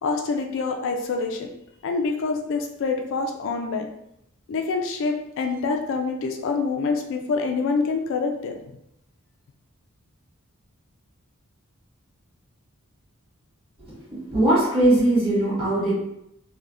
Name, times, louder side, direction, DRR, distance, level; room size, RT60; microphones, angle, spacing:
voice 1, 0.0-1.5 1.8-3.9 4.5-8.6, left 4 dB, 60° left, 4 dB, 0.3 m, -26 dB
voice 2, 14.1-16.0, right 1 dB, 25° right, -8 dB, 1.4 m, -20 dB
3.3 x 2.1 x 2.5 m, 0.80 s
head